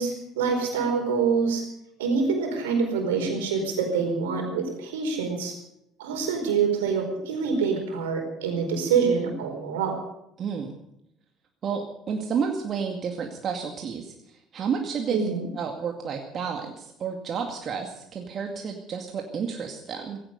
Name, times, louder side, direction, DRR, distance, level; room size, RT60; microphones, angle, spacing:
voice 1, 0.0-1.6 2.0-5.5 6.0-10.0 15.1-15.5, right 5 dB, 80° right, 3 dB, 4.5 m, -26 dB
voice 2, 10.4-10.7 11.6-20.2, right 6 dB, 45° right, 3 dB, 2.2 m, -31 dB
16.5 x 16.0 x 5.4 m, 0.79 s
hypercardioid pair, 65°, 0 cm